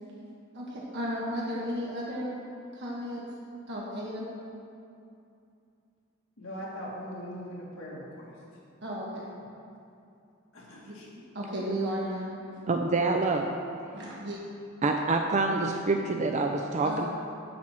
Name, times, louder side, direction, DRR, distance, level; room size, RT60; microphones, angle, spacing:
voice 1, 0.5-2.3 2.7-3.2 3.7-4.2 8.8-9.3 10.9-11.0 11.3-12.4 13.9-14.4 16.8-17.1, equal, 60° right, -5 dB, 1.3 m, -34 dB
voice 2, 6.4-8.3 10.5-11.1, equal, 70° left, -5 dB, 2.3 m, -40 dB
voice 3, 12.7-13.5 14.8-17.1, right 3 dB, 35° right, 3 dB, 0.4 m, -26 dB
10.5 x 4.4 x 7.5 m, 2.6 s
head